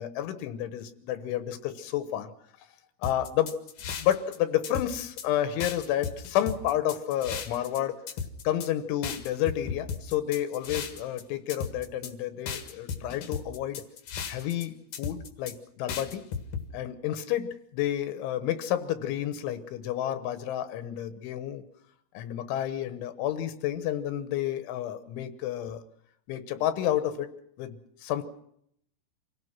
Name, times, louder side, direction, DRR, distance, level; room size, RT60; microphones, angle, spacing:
voice 1, 0.0-2.3 3.0-3.6 4.0-8.0 8.5-13.8 14.3-16.2 16.7-21.6 22.2-25.8 26.3-27.3 27.6-28.2, left 11 dB, 80° left, 11 dB, 3.5 m, -30 dB
sound 1, 3.0-4.4 4.6-5.3 5.6-7.8 8.1-8.7 9.0-11.2 11.5-12.1 12.5-14.6 14.9-15.5 15.9-16.6, left 6 dB, 55° left, 2.5 m, -35 dB
27.0 x 17.5 x 6.0 m, 0.70 s
omnidirectional pair, 5.5 m